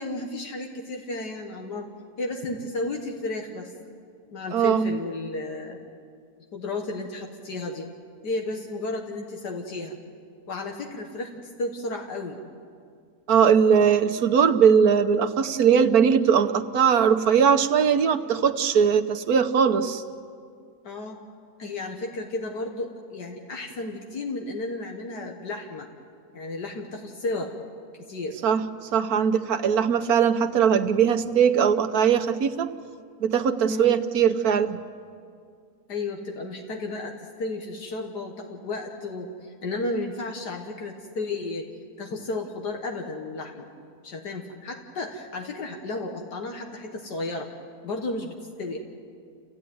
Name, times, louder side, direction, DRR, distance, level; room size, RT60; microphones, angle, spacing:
voice 1, 0.0-1.9 2.2-3.7 4.3-5.8 6.5-7.9 8.2-10.0 10.5-12.4 20.8-21.2 21.6-25.9 26.3-27.5 28.1-28.4 33.6-34.0 35.9-41.7 42.0-43.7 44.0-47.5 47.8-48.8, left 2 dB, 80° left, 2 dB, 2.2 m, -33 dB
voice 2, 4.5-4.9 13.3-20.0 28.4-28.6 28.9-32.7 33.2-34.8, right 7 dB, 65° right, 9 dB, 1.4 m, -20 dB
29.5 x 16.0 x 9.5 m, 2.3 s
omnidirectional pair, 1.7 m